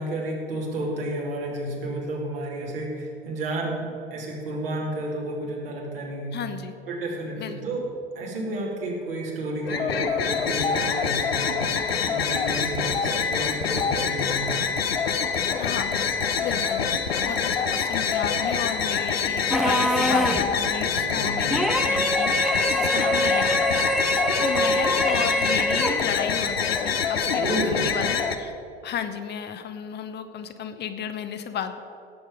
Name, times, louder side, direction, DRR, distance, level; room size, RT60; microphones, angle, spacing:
voice 1, 0.0-6.4 6.9-7.8 8.1-14.5 20.8-21.4 27.4-28.1, right 1 dB, 70° right, -2 dB, 2.9 m, -31 dB
voice 2, 6.3-6.7 7.4-7.6 15.6-15.9 16.4-16.8 17.3-22.4 22.8-23.8 24.1-28.5 28.8-31.8, left 8 dB, 35° left, 8 dB, 0.9 m, -33 dB
sound 1, 9.6-28.4, left 6 dB, 80° left, 0.8 m, -25 dB
Dinosaur sounds, 19.5-20.6 21.5-26.1, equal, ahead, 0.8 m, -24 dB
17.5 x 7.9 x 5.2 m, 2.6 s
figure-of-eight pair, 70°, 30 cm